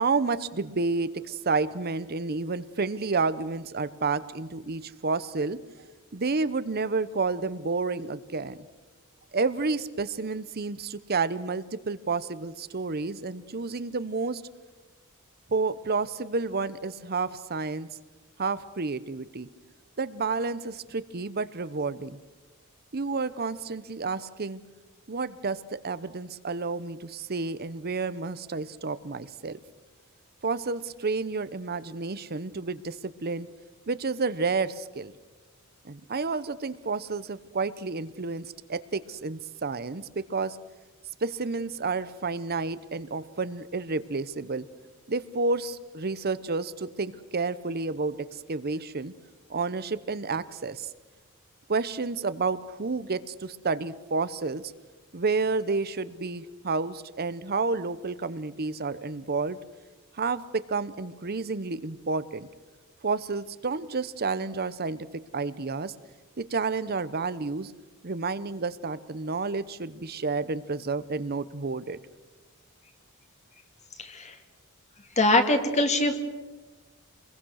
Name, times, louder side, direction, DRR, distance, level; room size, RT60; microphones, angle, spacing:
voice 1, 0.0-5.6 6.1-8.6 9.3-14.4 15.5-17.9 18.4-19.5 20.0-22.2 22.9-24.6 25.1-29.6 30.4-33.5 33.9-35.1 35.8-40.6 41.2-44.7 45.1-49.1 49.5-50.9 51.7-54.6 55.1-59.6 60.1-62.5 63.0-65.0 65.3-65.9 66.4-67.7 68.0-72.0, right 4 dB, 45° right, 15 dB, 0.8 m, -30 dB
voice 2, 74.0-74.4 75.2-76.2, left 2 dB, 30° left, 6 dB, 2.2 m, -23 dB
26.5 x 21.5 x 6.4 m, 1.2 s
head